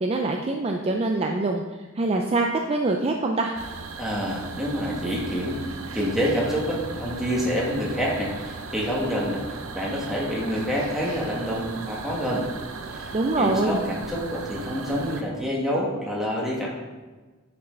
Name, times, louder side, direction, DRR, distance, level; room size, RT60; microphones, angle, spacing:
voice 1, 0.0-1.6 2.0-3.6 13.1-13.8, right 2 dB, 30° right, 2 dB, 0.5 m, -24 dB
sound 1, 3.6-15.2, right 4 dB, 85° right, 0.8 m, -37 dB
voice 2, 4.0-12.5 12.9-16.7, equal, ahead, -5 dB, 1.9 m, -27 dB
9.9 x 5.5 x 3.9 m, 1.3 s
head